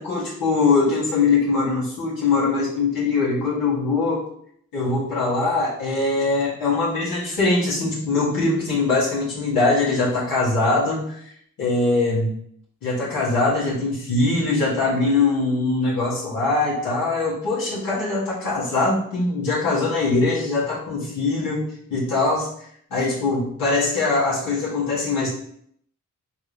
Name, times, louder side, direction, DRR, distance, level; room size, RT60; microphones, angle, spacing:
voice 1, 0.0-4.2 4.7-11.3 11.6-12.3 12.8-22.5 22.9-25.3, left 3 dB, 85° left, -8 dB, 1.6 m, -22 dB
3.8 x 2.7 x 4.8 m, 0.66 s
cardioid pair, 50°, 34 cm